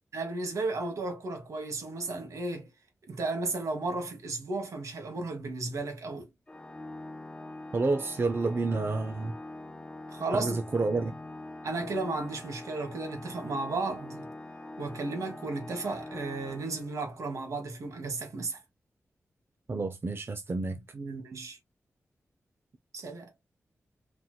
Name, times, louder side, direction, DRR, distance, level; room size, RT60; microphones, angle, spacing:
voice 1, 0.1-2.7 3.1-6.3 10.1-10.6 11.6-14.3 14.8-18.6 20.7-21.6 22.9-23.3, right 3 dB, 80° right, 1.4 m, -34 dB
Organ, 6.5-17.3, left 2 dB, 20° left, 0.6 m, -44 dB
voice 2, 7.7-9.3 10.4-11.1 19.7-20.8, right 3 dB, 50° right, 0.6 m, -29 dB
4.2 x 3.0 x 2.3 m
cardioid pair, 60°, 5 cm